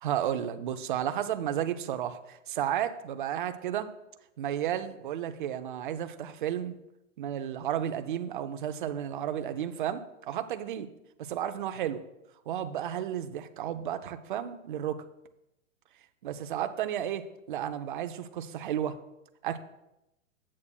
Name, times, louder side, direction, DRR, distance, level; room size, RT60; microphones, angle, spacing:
voice 1, 0.0-3.9 4.4-6.8 7.2-10.9 11.2-12.0 12.5-15.0 16.2-19.0 19.4-19.6, right 10 dB, 40° right, 9 dB, 0.5 m, -32 dB
10.5 x 8.5 x 2.2 m, 0.88 s
hypercardioid pair, 155°, 40 cm